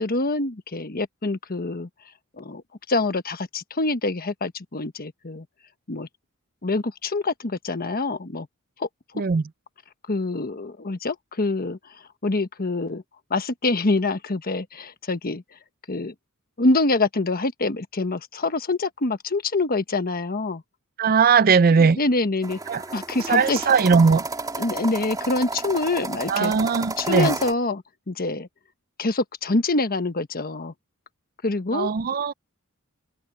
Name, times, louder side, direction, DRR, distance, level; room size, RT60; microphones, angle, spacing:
voice 1, 0.0-1.9 2.4-2.6 2.9-5.4 5.9-6.1 6.6-8.5 8.8-8.9 10.1-11.8 12.2-13.0 13.3-15.4 15.9-16.1 16.6-20.6 21.8-22.6 22.9-23.6 24.6-26.5 27.0-28.5 29.0-30.7 31.4-31.9, left 2 dB, 45° left, 1.3 m, -25 dB
voice 2, 21.0-22.0 22.7-22.8 23.3-24.2 26.3-27.3 31.7-32.3, right 5 dB, 40° right, 0.5 m, -19 dB
sound 1, 22.4-27.5, right 3 dB, 15° right, 3.6 m, -32 dB
head